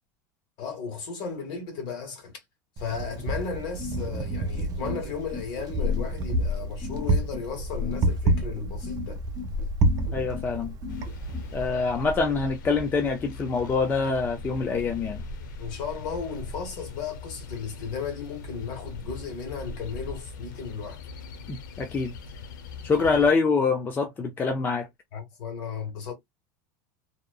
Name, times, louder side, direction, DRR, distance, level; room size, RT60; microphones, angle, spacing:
voice 1, 0.6-2.4 2.8-9.2 15.6-21.0 25.1-26.1, left 6 dB, 50° left, 1.6 m, -35 dB
Wind, 2.8-11.7, right 1 dB, 40° right, 0.6 m, -28 dB
sound 1, 3.8-11.4, left 3 dB, 10° right, 1.1 m, -38 dB
voice 2, 10.1-10.8 11.5-15.2 21.5-22.1 22.8-24.9, left 4 dB, 20° left, 0.5 m, -25 dB
sound 2, 10.9-23.3, left 2 dB, 90° left, 0.6 m, -40 dB
2.8 x 2.2 x 2.3 m
supercardioid pair, 140°, 10 cm